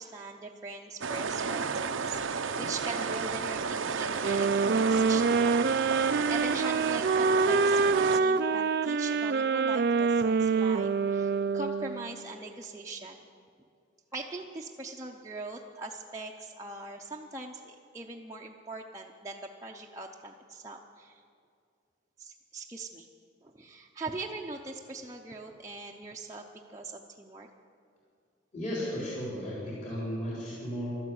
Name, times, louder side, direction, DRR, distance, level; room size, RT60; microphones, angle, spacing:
voice 1, 0.0-13.3 14.1-21.2 22.2-23.1 23.4-26.4 26.7-27.5, right 3 dB, 15° right, -1 dB, 0.6 m, -41 dB
sound 1, 1.0-8.2, right 5 dB, 90° right, 0.7 m, -32 dB
sound 2, 4.2-12.2, right 4 dB, 55° right, 0.4 m, -26 dB
voice 2, 28.5-30.9, equal, 40° left, -7 dB, 3.7 m, -35 dB
12.5 x 12.5 x 8.5 m, 2.3 s
head